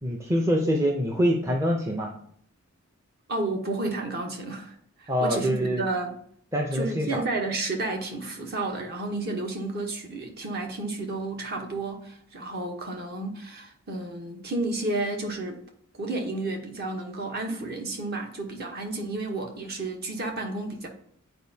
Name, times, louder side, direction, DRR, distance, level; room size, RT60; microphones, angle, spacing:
voice 1, 0.0-2.1 5.1-5.9 6.5-7.2, equal, 15° right, 0.5 m, -25 dB
voice 2, 3.3-6.2 6.7-15.6 15.9-20.9, right 2 dB, 45° right, 1.0 m, -31 dB
10.0 x 4.4 x 2.7 m
head